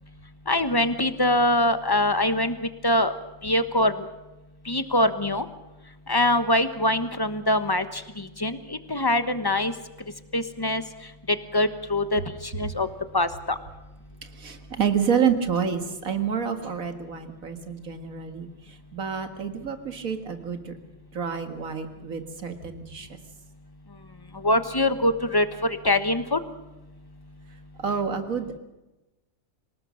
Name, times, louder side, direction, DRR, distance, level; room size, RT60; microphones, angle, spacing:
voice 1, 0.5-2.5 2.8-3.1 3.4-3.9 4.7-5.4 6.1-9.7 10.3-10.8 11.5-12.2 12.5-12.9 13.1-13.6 24.4-26.4, left 1 dB, 20° left, 11 dB, 1.1 m, -23 dB
voice 2, 14.2-20.7 21.1-23.2 27.8-28.6, right 7 dB, 75° right, 7 dB, 2.3 m, -28 dB
26.0 x 18.5 x 6.5 m, 1.0 s
omnidirectional pair, 1.4 m